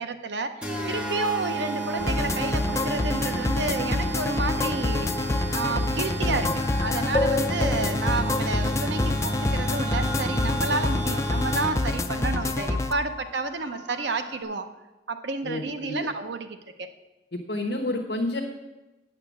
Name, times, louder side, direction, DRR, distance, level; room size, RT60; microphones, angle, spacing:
voice 1, 0.0-5.1 5.5-14.7 15.1-16.9, right 3 dB, 70° right, 8 dB, 0.7 m, -30 dB
sound 1, 0.6-12.0, right 1 dB, 5° right, 1.0 m, -31 dB
sound 2, 1.4-5.1 5.4-14.4, left 2 dB, 25° right, 3.4 m, -42 dB
sound 3, 2.0-12.9, left 2 dB, 15° left, 0.4 m, -27 dB
voice 2, 6.2-6.5 15.4-16.1 17.3-18.4, left 1 dB, 55° left, -1 dB, 1.0 m, -30 dB
9.4 x 6.7 x 7.2 m, 1.1 s
head